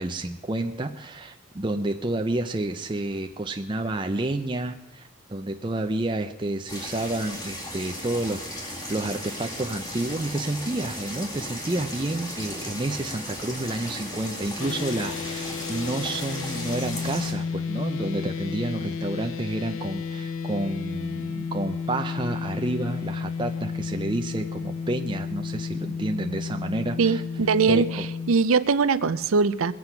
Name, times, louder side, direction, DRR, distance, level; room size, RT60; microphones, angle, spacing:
voice 1, 0.0-27.2 27.7-28.1, right 2 dB, 25° right, 5 dB, 0.5 m, -30 dB
sound 1, 6.7-17.3, equal, 20° left, 2.2 m, -36 dB
sound 2, 14.6-28.3, left 5 dB, 75° left, 0.8 m, -32 dB
voice 2, 27.0-27.9 28.3-29.7, right 5 dB, 85° right, 15 dB, 0.6 m, -21 dB
21.5 x 7.9 x 5.8 m, 0.98 s
head